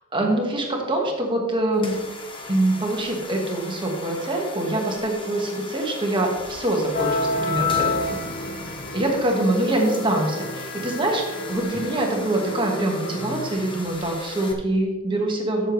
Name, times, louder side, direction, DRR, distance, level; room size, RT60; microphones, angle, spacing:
voice 1, 0.0-1.9 2.5-8.2 8.9-15.7, right 1 dB, 25° right, 1 dB, 1.5 m, -24 dB
sound 1, 1.7-14.5, left 2 dB, 25° left, 1.1 m, -38 dB
sound 2, 6.9-13.5, left 3 dB, 40° left, 0.8 m, -30 dB
13.5 x 6.6 x 3.2 m, 1.3 s
head